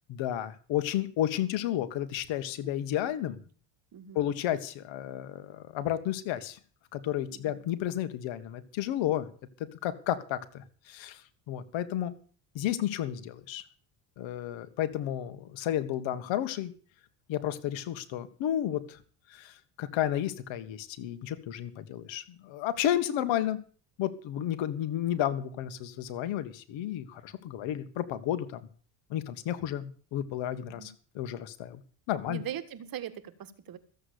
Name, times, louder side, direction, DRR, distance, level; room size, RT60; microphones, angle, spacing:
voice 1, 0.1-3.4 4.2-6.6 6.9-9.3 9.6-12.1 12.5-13.6 14.2-16.7 17.3-19.0 19.3-23.6 24.0-28.6 29.1-31.8 32.1-32.4, left 11 dB, 70° left, 12 dB, 1.9 m, -32 dB
voice 2, 3.9-4.3 7.3-7.6 30.7-30.9 32.3-33.8, right 10 dB, 45° right, 14 dB, 1.7 m, -40 dB
14.5 x 8.1 x 8.5 m, 0.42 s
cardioid pair, 105°, 47 cm